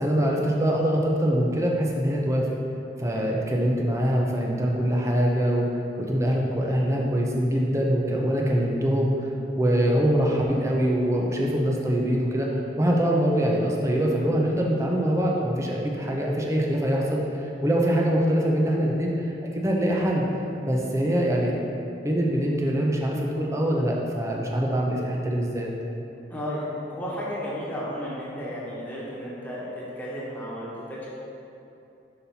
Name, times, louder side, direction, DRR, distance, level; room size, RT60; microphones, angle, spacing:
voice 1, 0.0-2.5 3.0-9.1 9.6-12.5 12.8-19.1 19.5-20.3 20.6-21.5 22.0-25.7, equal, 15° right, -1 dB, 0.6 m, -24 dB
voice 2, 26.3-31.1, equal, 10° left, -7 dB, 1.2 m, -33 dB
5.8 x 4.1 x 5.6 m, 2.8 s
head